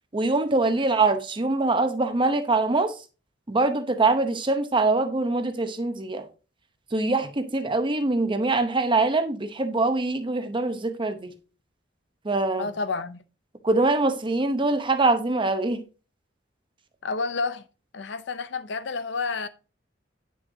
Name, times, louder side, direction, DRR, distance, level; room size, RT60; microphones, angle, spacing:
voice 1, 0.1-3.0 3.5-6.3 6.9-11.3 12.2-12.7 13.6-15.8, right 3 dB, 25° right, 0.8 m, -23 dB
voice 2, 12.6-13.2 17.0-17.6 17.9-19.5, left 4 dB, 70° left, 0.6 m, -30 dB
9.4 x 6.2 x 2.7 m
head